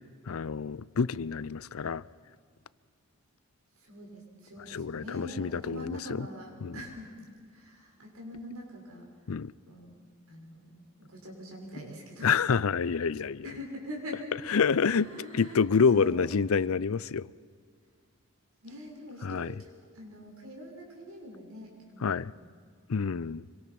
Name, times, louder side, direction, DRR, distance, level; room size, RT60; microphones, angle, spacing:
voice 1, 0.3-2.0 4.7-6.3 6.6-6.7 9.3-9.5 12.2-13.4 14.5-17.3 19.2-19.5 22.0-22.3 22.9-23.4, left 5 dB, 80° left, 0.5 m, -27 dB
voice 2, 3.8-9.1 9.7-12.3 13.4-14.2 14.9-16.4 18.6-22.3 22.9-23.1, equal, 85° right, 6.3 m, -44 dB
26.0 x 24.0 x 6.0 m
head